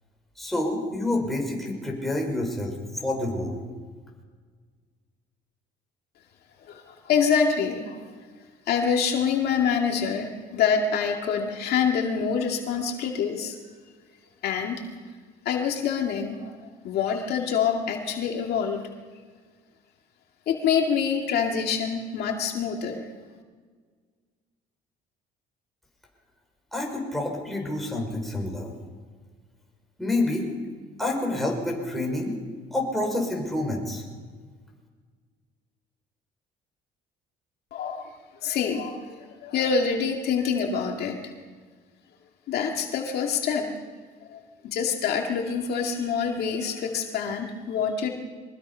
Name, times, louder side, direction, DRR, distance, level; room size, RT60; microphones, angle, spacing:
voice 1, 0.4-3.6 26.7-28.7 30.0-30.5 31.0-32.3 32.7-34.0, left 1 dB, ahead, -1 dB, 5.7 m, -28 dB
voice 2, 6.6-8.0 8.7-13.6 14.4-14.8 15.4-18.8 20.5-23.1 37.7-38.2 38.4-41.3 42.5-43.7 44.3-48.1, left 6 dB, 70° left, 2 dB, 2.3 m, -26 dB
23.5 x 20.0 x 5.7 m, 1.5 s
cardioid pair, 110°, 17 cm